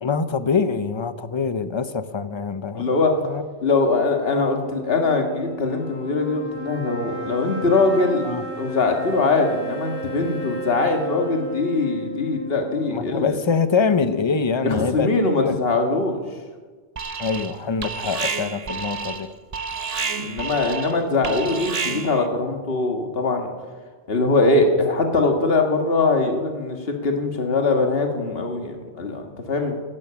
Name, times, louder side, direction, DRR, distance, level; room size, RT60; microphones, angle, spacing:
voice 1, 0.0-2.9 3.2-3.5 8.2-8.4 12.9-15.6 17.2-19.3, left 5 dB, 30° left, 12 dB, 0.6 m, -24 dB
voice 2, 2.7-3.1 3.6-8.3 8.6-13.4 14.6-16.2 20.2-23.5 24.1-29.8, left 3 dB, 55° left, 3 dB, 1.9 m, -22 dB
sound 1, 4.2-13.7, right 2 dB, 60° right, 7.3 m, -34 dB
Alarm, 17.0-17.6 17.8-22.3, right 5 dB, 35° right, 0.8 m, -30 dB
12.5 x 12.0 x 8.7 m, 1.5 s
omnidirectional pair, 1.2 m